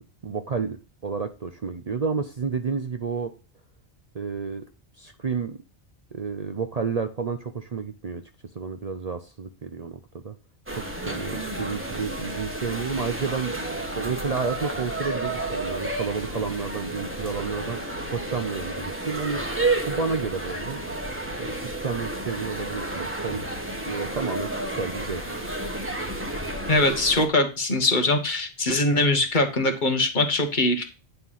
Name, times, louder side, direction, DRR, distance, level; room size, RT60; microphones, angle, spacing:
voice 1, 0.2-3.3 4.1-4.6 5.0-5.6 6.1-8.2 8.5-10.0 10.2-10.3 10.7-17.8 18.1-19.4 19.9-20.8 21.4-23.4 23.9-25.2, right 5 dB, 45° right, 7 dB, 0.6 m, -30 dB
sound 1, 10.7-27.3, right 2 dB, 10° right, 1.0 m, -31 dB
voice 2, 26.7-30.8, left 2 dB, 45° left, 5 dB, 1.3 m, -22 dB
9.4 x 3.3 x 5.6 m, 0.32 s
omnidirectional pair, 1.1 m